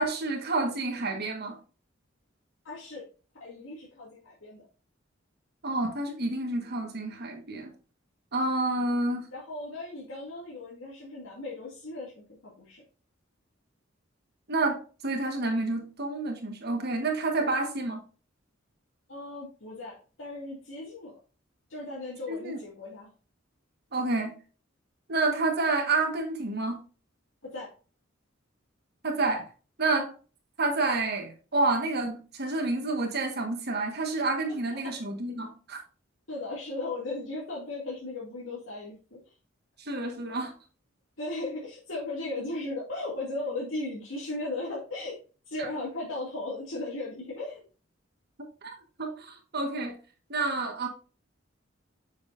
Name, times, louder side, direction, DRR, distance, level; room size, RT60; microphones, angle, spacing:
voice 1, 0.0-1.6 5.6-7.7 8.3-9.3 14.5-18.0 22.3-22.6 23.9-24.4 25.1-26.8 29.0-29.5 29.8-30.1 30.6-35.8 39.8-40.5 48.6-48.7 49.0-50.0 50.3-50.9, right 2 dB, 55° right, 1.4 m, -29 dB
voice 2, 2.6-3.0 3.4-4.7 9.3-12.2 12.6-12.8 17.4-17.5 19.1-21.2 21.7-23.1 27.4-27.7 34.7-34.8 36.3-39.2 41.2-45.2 45.5-47.6, left 2 dB, 85° left, 2.3 m, -36 dB
7.4 x 6.2 x 2.5 m
head